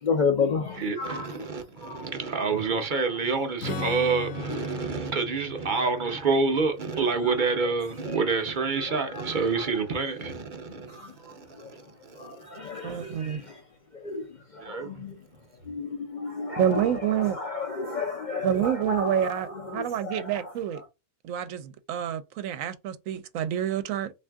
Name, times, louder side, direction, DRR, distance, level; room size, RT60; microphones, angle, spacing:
voice 1, 0.0-2.1 4.5-4.6 5.8-5.9 7.2-7.5 8.1-8.2 8.9-9.6 10.9-11.7 12.2-13.6 13.9-15.2 15.7-20.5, left 5 dB, 50° left, 0.5 m, -33 dB
voice 2, 0.8-11.8 12.1-12.3 12.6-12.7 14.6-15.0, right 4 dB, 45° right, 0.7 m, -28 dB
Strum, 3.6-9.2, left 3 dB, 75° left, 1.1 m, -39 dB
voice 3, 12.8-13.4 16.6-17.4 18.4-20.8 21.2-24.1, right 10 dB, 80° right, 1.0 m, -28 dB
3.5 x 2.6 x 3.4 m
omnidirectional pair, 1.4 m